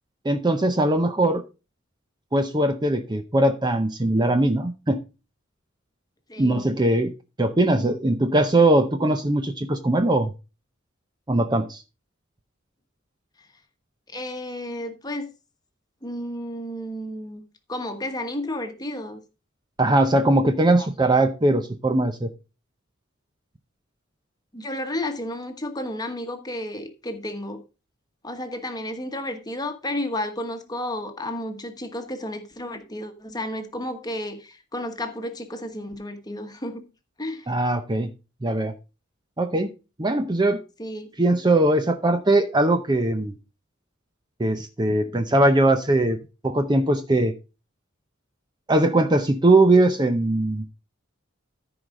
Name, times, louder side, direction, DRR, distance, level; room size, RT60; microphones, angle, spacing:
voice 1, 0.2-1.4 2.3-5.0 6.4-7.1 7.4-10.3 11.3-11.8 19.8-22.3 37.5-38.1 38.4-38.7 39.4-39.7 40.0-40.6 41.2-43.3 44.4-46.2 46.4-47.3 48.7-50.8, right 2 dB, 20° right, 0.6 m, -20 dB
voice 2, 6.3-6.7 14.1-15.3 16.0-17.4 17.7-19.2 20.8-20.9 24.5-27.6 28.2-36.8 37.2-37.5 40.8-41.1, left 1 dB, 20° left, 1.2 m, -32 dB
14.0 x 4.8 x 3.8 m
head